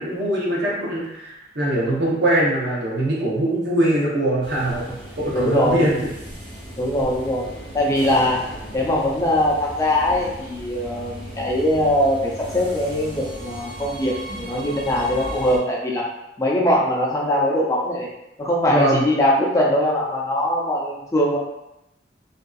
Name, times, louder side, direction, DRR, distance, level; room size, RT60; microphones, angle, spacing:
voice 1, 0.0-6.1 18.7-19.0, right 1 dB, 65° right, -5 dB, 0.8 m, -22 dB
sound 1, 4.4-15.6, right 1 dB, 30° right, 0.6 m, -36 dB
voice 2, 5.3-5.9 6.8-7.5 7.7-8.4 8.7-16.0 16.4-18.1 18.4-21.4, left 1 dB, 20° left, -4 dB, 0.4 m, -21 dB
2.6 x 2.3 x 2.3 m, 0.86 s
head